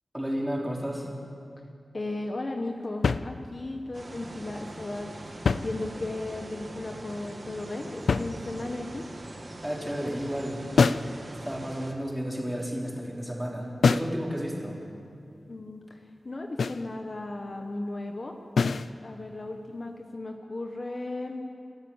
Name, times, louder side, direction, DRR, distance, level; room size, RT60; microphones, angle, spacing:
voice 1, 0.1-1.1 9.6-10.7 11.4-14.8, equal, 5° right, -2 dB, 3.8 m, -32 dB
voice 2, 1.9-9.1 15.5-18.4 19.0-21.5, left 2 dB, 40° left, 3 dB, 1.3 m, -36 dB
sound 1, 3.0-3.8 5.3-6.3 8.1-8.9 10.8-11.2 13.8-14.2 16.6-16.9 18.6-18.9, left 4 dB, 85° left, 0.5 m, -26 dB
sound 2, 3.9-11.9, right 2 dB, 40° right, 2.4 m, -42 dB
27.5 x 13.5 x 7.3 m, 2.6 s
wide cardioid pair, 120°, 0 cm